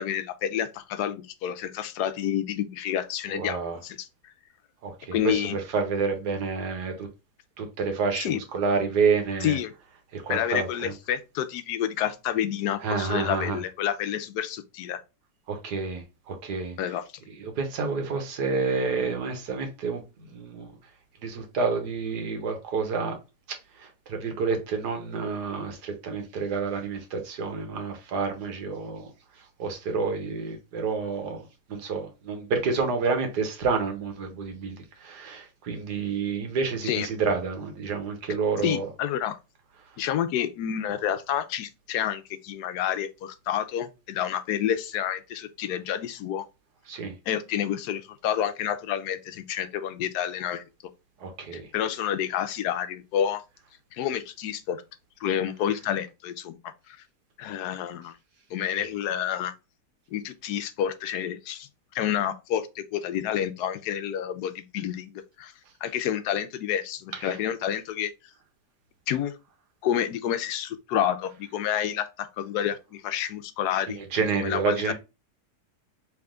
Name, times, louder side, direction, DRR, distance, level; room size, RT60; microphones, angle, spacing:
voice 1, 0.0-4.1 5.1-5.6 8.1-8.4 9.4-9.7 10.3-15.0 16.8-17.0 36.8-37.1 38.6-39.4 40.0-46.4 47.3-50.6 51.5-53.4 53.9-54.8 55.2-56.6 56.9-57.0 57.4-58.1 58.5-59.5 60.1-61.7 61.9-65.5 65.8-68.1 69.1-69.3 69.8-74.9, left 10 dB, 85° left, 1.1 m, -29 dB
voice 2, 3.3-3.8 4.8-6.9 7.6-9.6 10.1-10.9 12.8-13.6 15.5-16.8 17.6-20.0 20.3-20.7 21.2-23.2 24.1-29.1 29.6-31.4 31.7-38.9 46.9-47.1 51.2-51.7 67.2-67.3 74.1-74.9, right 4 dB, 80° right, 1.7 m, -29 dB
3.5 x 3.4 x 3.6 m
omnidirectional pair, 1.7 m